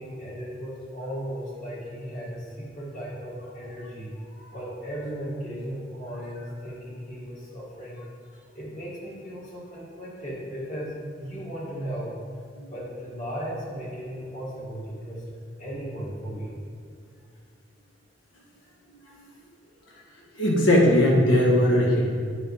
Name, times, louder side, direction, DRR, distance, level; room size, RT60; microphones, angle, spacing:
voice 1, 0.0-4.1 4.5-8.0 8.5-12.1 12.7-15.2 15.6-16.5, equal, 40° left, -6 dB, 2.1 m, -36 dB
voice 2, 20.3-22.0, left 1 dB, 75° left, -3 dB, 1.7 m, -19 dB
9.6 x 5.4 x 3.6 m, 2.2 s
head